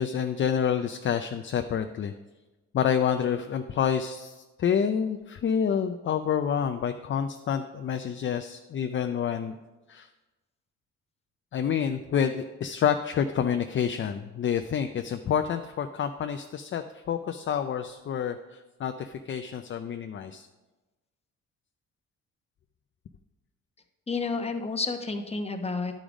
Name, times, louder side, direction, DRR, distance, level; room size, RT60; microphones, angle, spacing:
voice 1, 0.0-2.1 2.7-9.6 9.9-10.1 11.5-20.5, left 8 dB, 40° left, 7 dB, 0.5 m, -28 dB
voice 2, 24.1-26.0, left 4 dB, 20° left, 5 dB, 1.0 m, -30 dB
10.5 x 5.1 x 5.0 m, 1.1 s
cardioid pair, 90°, 30 cm